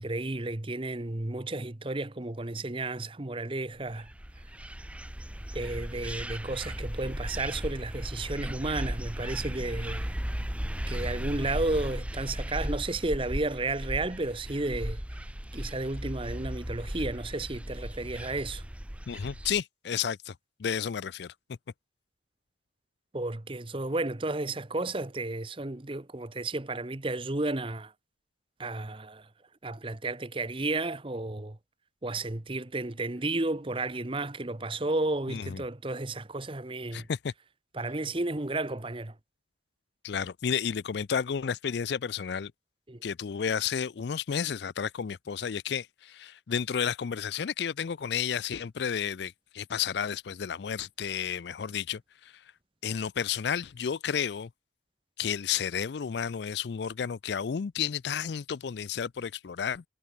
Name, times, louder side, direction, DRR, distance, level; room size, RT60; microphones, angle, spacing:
voice 1, 0.0-4.1 5.5-10.1 10.9-15.0 15.5-18.6 23.1-27.9 28.6-29.3 29.6-31.6 32.0-37.1 37.7-39.1 42.9-43.0, right 2 dB, 25° right, 0.9 m, -32 dB
sound 1, 3.9-19.6, equal, 5° right, 0.9 m, -36 dB
voice 2, 19.1-20.3 20.6-21.3 35.3-35.6 36.9-37.3 40.0-42.5 43.0-52.3 52.8-54.5 55.2-59.8, left 7 dB, 60° left, 0.4 m, -32 dB
head